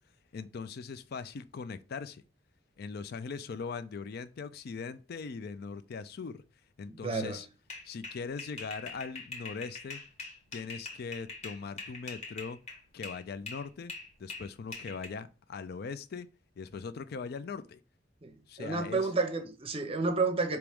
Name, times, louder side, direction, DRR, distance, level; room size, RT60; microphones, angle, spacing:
voice 1, 0.3-2.2 2.8-6.4 6.8-7.5 7.8-10.0 10.5-12.6 12.9-13.9 14.2-16.3 16.6-17.8 18.5-19.1, left 5 dB, 55° left, 0.4 m, -40 dB
voice 2, 6.9-7.4 18.2-20.6, right 3 dB, 30° right, 0.7 m, -31 dB
sound 1, 7.7-13.2 13.5-15.1, left 3 dB, 35° left, 1.2 m, -43 dB
4.6 x 3.0 x 3.5 m
head